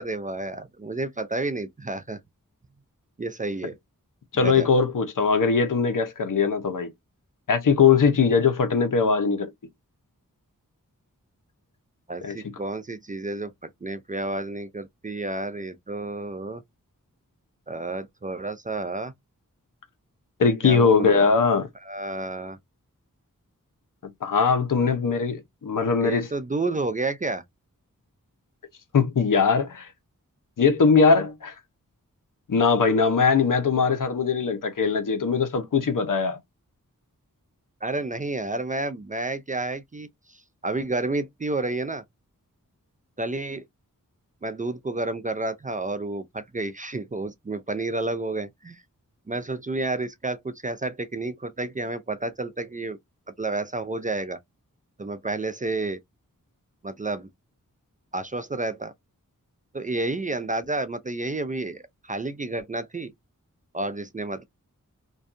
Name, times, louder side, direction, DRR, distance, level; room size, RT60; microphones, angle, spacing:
voice 1, 0.0-2.2 3.2-3.8 4.3-4.7 12.1-16.6 17.7-19.1 20.6-21.2 21.8-22.6 26.0-27.4 37.8-42.0 43.2-43.6 44.4-48.8 49.3-53.0 53.4-54.4 55.0-56.0 56.8-57.3 58.1-58.9 59.7-63.1 63.7-64.4, right 2 dB, 25° right, 0.4 m, -30 dB
voice 2, 4.3-6.9 7.5-9.5 12.2-12.4 20.4-21.7 24.0-26.3 28.9-29.9 30.6-31.5 32.5-36.4, left 5 dB, 65° left, 0.7 m, -21 dB
2.5 x 2.3 x 2.4 m
wide cardioid pair, 50°, 34 cm